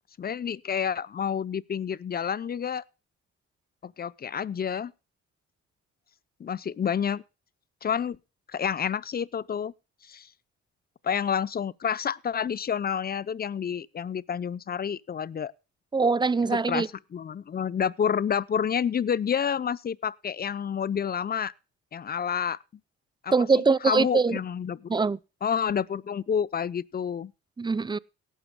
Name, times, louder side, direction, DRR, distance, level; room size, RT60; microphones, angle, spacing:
voice 1, 0.2-2.8 3.8-4.9 6.4-7.2 7.8-8.2 8.5-9.7 10.1-10.3 11.0-15.5 16.5-16.9 17.1-21.5 21.9-22.6 23.2-24.9 25.4-27.3, left 7 dB, 30° left, 0.6 m, -29 dB
voice 2, 15.9-16.9 23.3-24.4 24.9-25.2 27.6-28.0, right 4 dB, 15° right, 0.5 m, -23 dB
18.0 x 11.0 x 2.2 m
cardioid pair, 90°, 30 cm